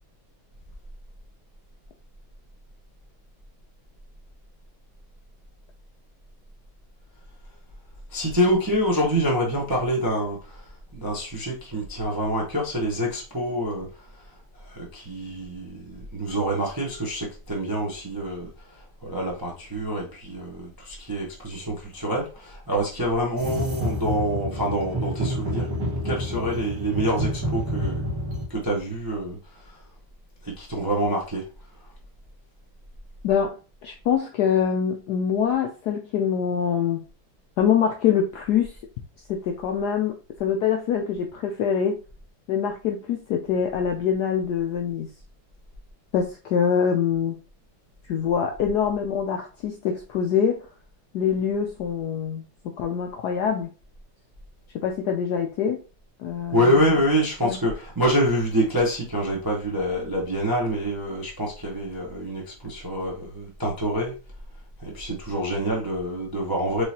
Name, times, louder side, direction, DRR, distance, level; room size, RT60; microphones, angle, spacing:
voice 1, 8.1-14.2 14.5-25.7 26.0-28.0 28.5-29.8 30.4-31.4 56.5-64.1 64.8-66.8, equal, 25° right, -2 dB, 0.4 m, -26 dB
sound 1, 23.4-28.4, equal, 50° right, 2.0 m, -28 dB
voice 2, 33.2-37.0 37.6-38.8 39.3-42.0 42.5-45.1 46.1-47.4 48.1-50.7 51.1-52.4 52.8-53.7 54.8-55.8 56.2-57.0 57.4-57.6, left 7 dB, 75° left, 3 dB, 0.9 m, -24 dB
4.7 x 3.3 x 2.8 m, 0.34 s
omnidirectional pair, 2.3 m